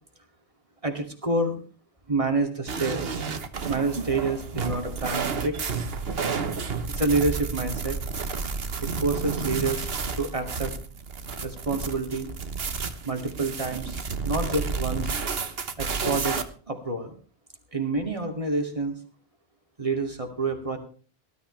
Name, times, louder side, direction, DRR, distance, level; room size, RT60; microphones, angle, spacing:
voice 1, 0.8-1.6 2.1-3.2 3.7-5.6 6.9-8.0 9.0-9.9 10.2-10.7 11.4-12.3 13.0-14.0 14.2-15.1 15.8-16.4 16.7-17.1 17.7-18.9 19.8-20.8, right 3 dB, 30° right, 3 dB, 2.8 m, -28 dB
sound 1, 2.7-16.4, right 5 dB, 65° right, 1.4 m, -31 dB
19.0 x 13.0 x 3.4 m, 0.40 s
omnidirectional pair, 1.1 m